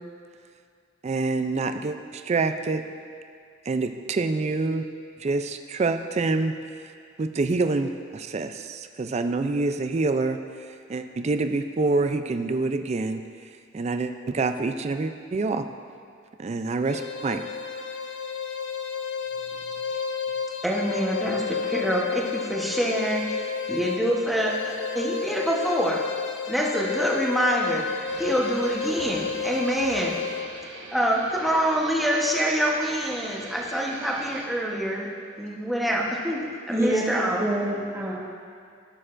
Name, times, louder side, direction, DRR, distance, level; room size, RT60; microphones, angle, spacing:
voice 1, 1.0-2.8 3.7-4.8 5.2-6.5 7.2-13.2 13.7-15.7 16.4-17.4, right 3 dB, 35° right, 8 dB, 0.4 m, -26 dB
sound 1, 16.9-30.5, left 5 dB, 65° left, 0.5 m, -31 dB
voice 2, 20.6-26.0 26.5-27.8 28.2-30.2 30.9-35.1 35.4-37.5, equal, ahead, -3 dB, 0.9 m, -26 dB
sound 2, 28.0-34.5, right 2 dB, 90° right, 1.1 m, -43 dB
voice 3, 36.7-38.1, right 1 dB, 15° right, -5 dB, 1.3 m, -26 dB
15.0 x 6.7 x 2.5 m, 2.2 s
head